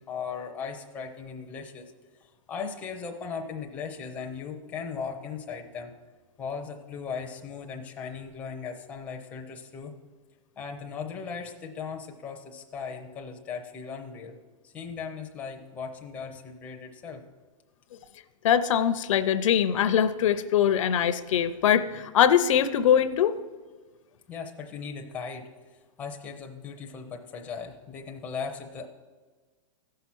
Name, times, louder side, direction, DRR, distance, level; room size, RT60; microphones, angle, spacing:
voice 1, 0.1-1.9 2.5-5.9 6.4-9.9 10.6-14.4 14.6-17.2 24.3-25.5 26.0-28.9, left 5 dB, 10° left, 2 dB, 0.6 m, -37 dB
voice 2, 18.4-23.4, left 9 dB, 60° left, 12 dB, 0.6 m, -22 dB
14.5 x 5.7 x 6.1 m, 1.4 s
supercardioid pair, 170°, 18 cm